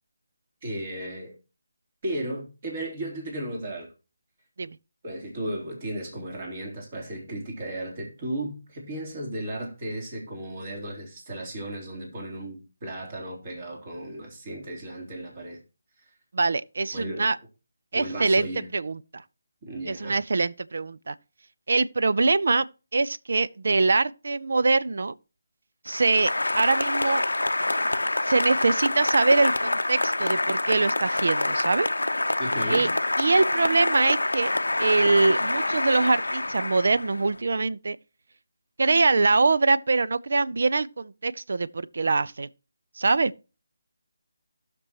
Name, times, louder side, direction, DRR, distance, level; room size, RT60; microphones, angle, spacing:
voice 1, 0.6-1.3 2.0-3.9 5.0-15.6 16.9-17.3 17.9-18.7 19.6-20.2 32.4-32.9, right 1 dB, 35° right, 3.4 m, -35 dB
voice 2, 16.3-17.4 17.9-19.2 19.9-21.2 21.7-22.7 22.9-25.1 25.9-27.2 28.2-31.9 32.7-32.9 33.2-34.5 34.8-38.0 38.8-42.5 43.0-43.3, right 3 dB, 65° right, 0.5 m, -23 dB
Applause, 25.9-37.4, left 2 dB, 85° left, 0.6 m, -26 dB
17.0 x 6.1 x 3.0 m
figure-of-eight pair, 155°, 0 cm